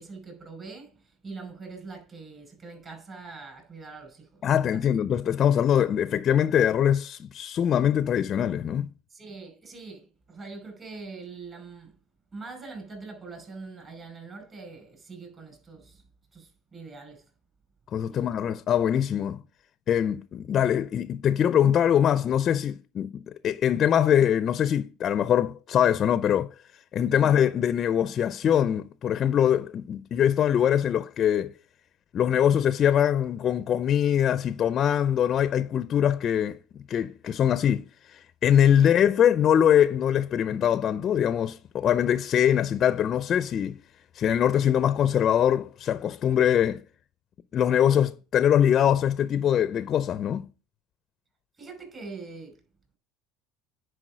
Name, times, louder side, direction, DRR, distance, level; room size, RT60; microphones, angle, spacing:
voice 1, 0.0-4.9 9.1-11.9 12.3-16.0 16.3-17.2 18.1-18.3 27.1-27.3 38.8-38.9 47.8-48.0 51.6-52.6, right 4 dB, 35° right, 5.3 m, -43 dB
voice 2, 4.4-8.9 17.9-19.4 19.9-26.5 26.9-31.5 32.1-36.6 36.9-43.8 44.1-46.8 47.5-50.5, left 9 dB, 45° left, 0.5 m, -23 dB
9.9 x 4.8 x 4.9 m
supercardioid pair, 90°, 0 cm